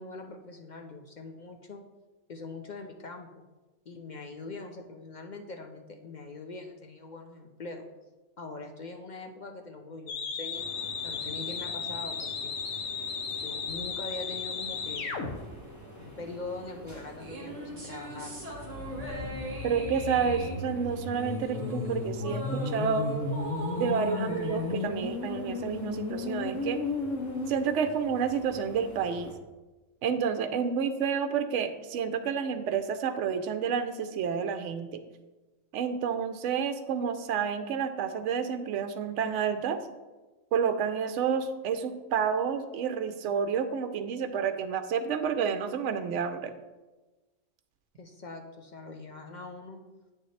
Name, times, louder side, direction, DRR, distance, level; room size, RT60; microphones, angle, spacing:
voice 1, 0.0-1.8 2.3-3.4 3.9-7.9 8.4-10.7 11.0-12.6 13.4-15.2 15.9-18.4 48.0-49.8, left 3 dB, 55° left, 3 dB, 0.5 m, -42 dB
sound 1, 10.1-15.3 18.4-27.5, left 4 dB, 75° left, 1.2 m, -34 dB
sound 2, 10.5-29.3, equal, 15° left, 1.2 m, -48 dB
sound 3, 17.2-25.8, right 2 dB, 30° right, 1.3 m, -39 dB
voice 2, 19.6-23.1 23.8-26.8 27.5-29.3 30.0-35.0 35.7-39.8 40.5-46.5, right 7 dB, 70° right, 8 dB, 0.9 m, -30 dB
8.6 x 6.6 x 3.2 m, 1.2 s
omnidirectional pair, 1.3 m